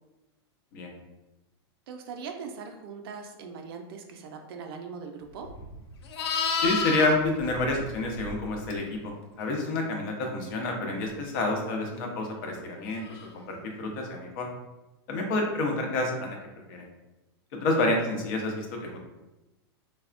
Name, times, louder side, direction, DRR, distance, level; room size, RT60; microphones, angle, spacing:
voice 1, 1.9-5.5, right 5 dB, 65° right, 4 dB, 0.4 m, -40 dB
Livestock farm animals working animals, 5.4-8.7 13.1-13.3, left 4 dB, 80° left, 0.4 m, -32 dB
voice 2, 6.6-14.5 15.1-16.4 16.7-16.8 17.5-19.0, left 2 dB, 55° left, 1 dB, 0.7 m, -29 dB
3.3 x 2.0 x 2.5 m, 1.0 s
supercardioid pair, 135°, 14 cm